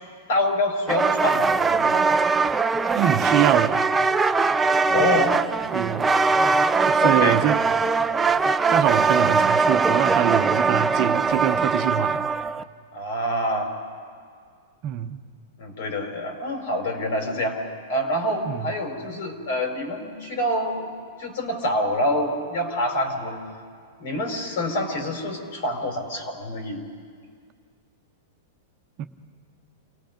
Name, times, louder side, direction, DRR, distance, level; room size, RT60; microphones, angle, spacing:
voice 1, 0.3-2.1 4.9-5.4 7.0-7.4 12.9-13.8 15.6-20.9 21.2-23.4 24.0-26.9, left 1 dB, 65° left, 3 dB, 4.7 m, -26 dB
sound 1, 0.9-12.6, right 4 dB, 10° right, 0.5 m, -21 dB
voice 2, 3.0-3.8 5.7-6.1 6.9-7.6 8.7-12.2 14.8-15.2 18.5-18.7 29.0-29.1, right 12 dB, 35° right, 7 dB, 0.9 m, -24 dB
28.5 x 18.0 x 5.3 m, 2.1 s
supercardioid pair, 150°, 0 cm